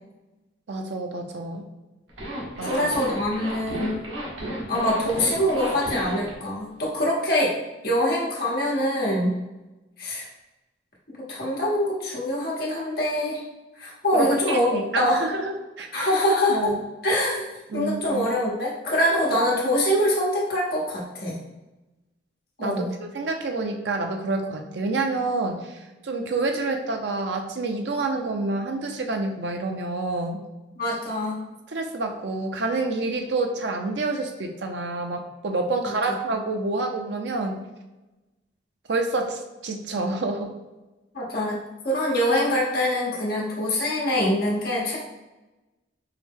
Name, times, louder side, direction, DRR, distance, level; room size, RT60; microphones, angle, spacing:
voice 1, 0.7-1.6 2.6-2.9 14.1-16.1 16.5-16.8 17.7-18.3 22.6-30.4 31.7-37.6 38.9-40.5, right 3 dB, 70° right, 3 dB, 0.5 m, -28 dB
Zipper (clothing), 2.1-6.3, equal, 85° right, 1.0 m, -33 dB
voice 2, 2.6-3.9 4.7-7.5 7.8-9.4 10.0-10.3 11.3-13.4 13.7-14.7 14.9-15.2 15.9-16.7 17.0-21.4 22.6-22.9 30.8-31.4 35.8-36.2 41.1-45.0, left 1 dB, 50° left, -4 dB, 1.1 m, -24 dB
4.6 x 2.1 x 3.5 m, 1.1 s
head